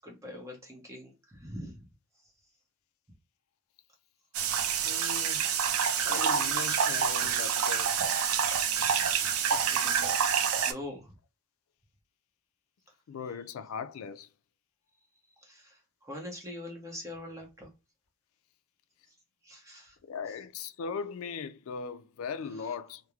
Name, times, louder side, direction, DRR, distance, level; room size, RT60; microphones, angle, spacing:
voice 1, 0.0-1.8 9.4-11.1 15.4-17.7 19.4-20.0, left 1 dB, 15° right, 0.7 m, -44 dB
sound 1, 4.3-10.7, right 7 dB, 75° right, 0.4 m, -27 dB
voice 2, 4.8-5.5 6.1-7.9 13.1-14.3 20.1-23.0, left 5 dB, 75° left, 0.3 m, -38 dB
3.0 x 2.0 x 2.3 m
head